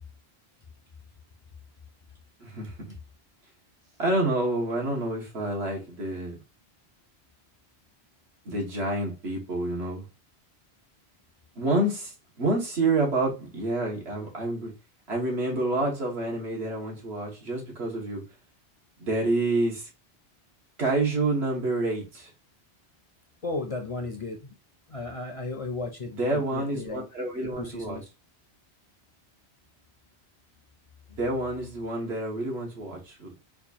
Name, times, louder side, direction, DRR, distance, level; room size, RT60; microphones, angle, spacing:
voice 1, 2.4-2.9 4.0-6.4 8.4-10.0 11.6-12.1 12.4-14.7 15.1-18.2 19.0-19.9 20.8-22.3 26.1-28.0 31.1-33.3, right 2 dB, 80° right, 1.5 m, -28 dB
voice 2, 23.4-24.5 24.9-27.1 27.6-28.1, left 3 dB, 45° left, 0.5 m, -35 dB
4.4 x 2.4 x 2.7 m
omnidirectional pair, 1.1 m